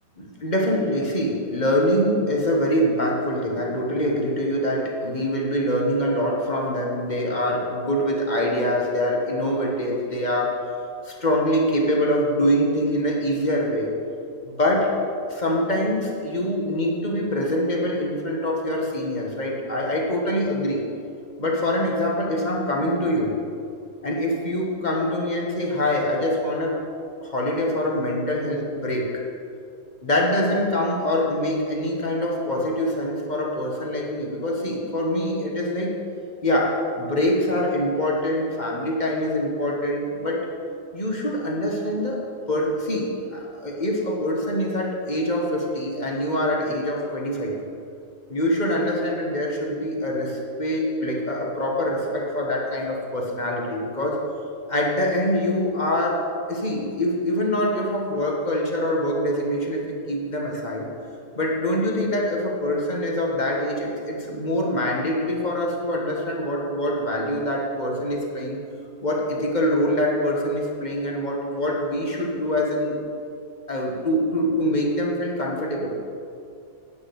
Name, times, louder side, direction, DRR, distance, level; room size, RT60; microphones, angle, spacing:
voice 1, 0.2-10.6 11.0-13.9 14.4-14.9 15.3-20.8 21.4-23.4 24.0-26.8 27.2-29.2 30.0-36.0 36.4-40.5 40.9-47.6 48.3-54.2 54.7-60.9 61.3-68.6 69.0-73.0 73.7-75.9, left 1 dB, 25° left, -1 dB, 1.4 m, -24 dB
9.6 x 6.3 x 8.1 m, 2.5 s
omnidirectional pair, 2.0 m